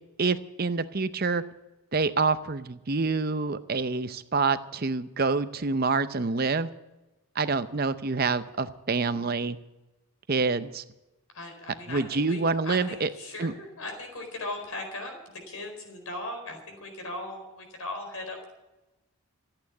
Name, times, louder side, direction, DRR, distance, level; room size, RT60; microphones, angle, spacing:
voice 1, 0.2-1.4 1.9-6.7 7.4-9.6 10.3-10.8 11.9-13.1 13.4-13.5, right 4 dB, 40° right, 12 dB, 0.6 m, -27 dB
voice 2, 11.3-18.5, left 2 dB, 80° left, 3 dB, 4.4 m, -38 dB
14.5 x 8.7 x 9.4 m, 1.0 s
head